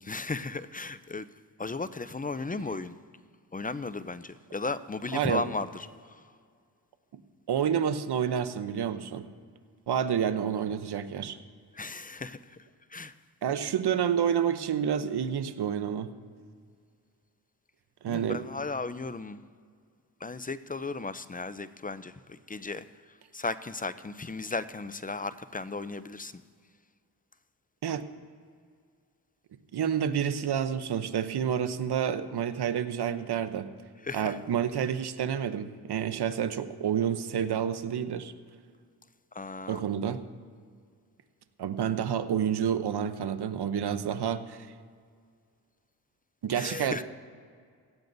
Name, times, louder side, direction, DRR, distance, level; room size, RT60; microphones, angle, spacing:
voice 1, 0.0-1.3 1.6-3.0 3.5-6.2 11.7-12.6 12.9-13.1 18.1-19.4 20.2-22.8 23.3-26.4 34.0-34.4 39.3-39.8 46.5-47.0, left 3 dB, 20° left, 14 dB, 0.6 m, -35 dB
voice 2, 5.1-5.4 7.5-9.3 9.9-11.4 13.4-16.1 18.0-18.4 27.8-28.0 29.7-33.7 34.1-38.3 39.7-40.2 41.6-44.7 46.4-47.0, right 8 dB, 65° right, 11 dB, 0.9 m, -29 dB
17.5 x 13.5 x 2.7 m, 2.1 s
supercardioid pair, 45°, 42 cm